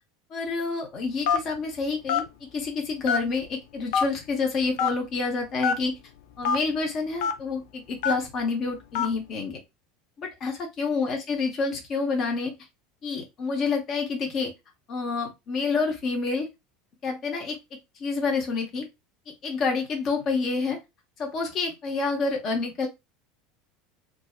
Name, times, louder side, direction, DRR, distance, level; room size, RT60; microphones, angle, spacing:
voice 1, 0.3-6.0 6.4-9.6 10.2-12.5 13.0-14.5 14.9-16.5 17.0-18.9 19.3-20.8 21.2-22.9, left 4 dB, 40° left, 2 dB, 0.7 m, -28 dB
Telephone, 1.3-1.6 2.1-2.3 3.0-3.4 3.9-4.0 4.8-4.9 5.6-5.8 6.4-6.6 7.2-7.3 8.0-8.3 8.9-9.1, left 7 dB, 65° left, 0.4 m, -23 dB
3.5 x 2.0 x 2.4 m, 0.22 s
figure-of-eight pair, 75°, 0 cm